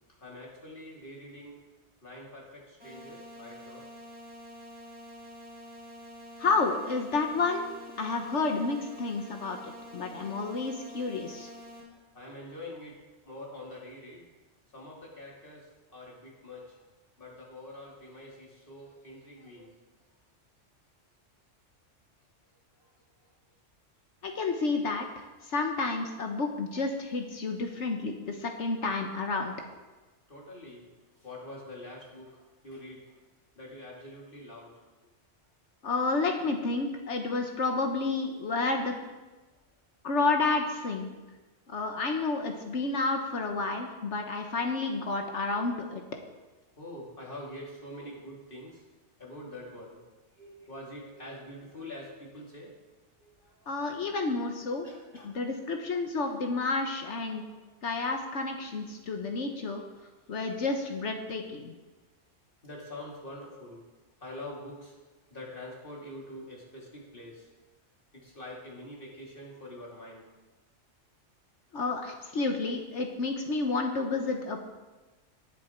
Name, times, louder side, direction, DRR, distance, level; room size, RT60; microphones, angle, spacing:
voice 1, 0.2-1.6 2.0-3.9 8.1-8.3 11.4-11.6 11.9-14.3 14.7-16.8 17.2-19.8 22.8-22.9 23.2-23.3 27.7-28.1 30.3-30.9 31.1-33.2 33.5-34.9 46.7-48.8 49.2-50.0 50.3-52.8 53.2-53.7 54.3-54.5 54.8-56.0 57.1-57.5 62.6-63.9 64.2-65.0 65.3-67.5 68.1-70.3, left 1 dB, 45° left, -3 dB, 2.9 m, -46 dB
sound 1, 2.8-11.8, equal, 25° right, 3.8 m, -47 dB
voice 2, 6.4-7.7 8.0-11.5 24.2-29.5 35.8-38.9 40.0-41.1 41.7-46.0 53.7-54.9 55.2-57.4 57.8-59.8 60.3-61.7 71.7-74.6, left 3 dB, 70° left, 4 dB, 1.4 m, -30 dB
19.0 x 7.0 x 4.5 m, 1.2 s
omnidirectional pair, 1.3 m